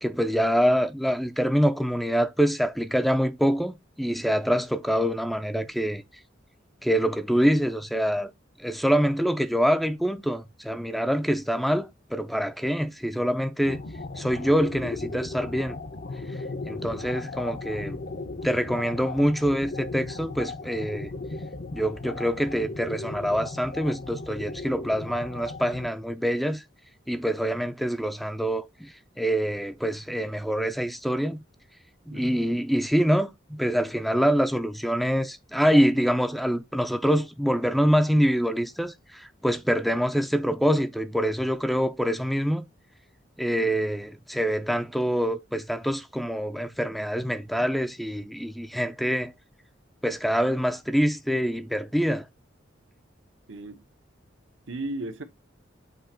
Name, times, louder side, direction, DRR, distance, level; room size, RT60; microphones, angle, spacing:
voice 1, 0.0-6.0 6.8-8.3 8.6-13.8 14.2-15.8 16.7-18.0 18.4-21.1 21.7-26.6 27.1-31.4 32.1-42.6 43.4-49.3 50.0-52.2, equal, ahead, 0.4 m, -25 dB
sound 1, 13.6-25.9, left 3 dB, 50° left, 0.7 m, -36 dB
voice 2, 53.5-53.8 54.7-55.2, right 2 dB, 85° right, 1.1 m, -36 dB
7.8 x 2.9 x 4.3 m
head